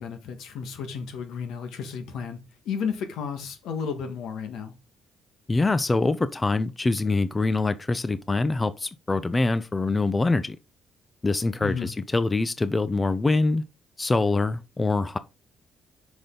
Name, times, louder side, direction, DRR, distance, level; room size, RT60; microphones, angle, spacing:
voice 1, 0.0-2.4 2.6-4.7 11.6-11.9, left 6 dB, 85° left, 1.5 m, -33 dB
voice 2, 5.5-10.6 11.2-13.6 14.0-15.2, left 3 dB, 20° left, 0.5 m, -24 dB
6.1 x 5.2 x 3.8 m
cardioid pair, 90°, 0 cm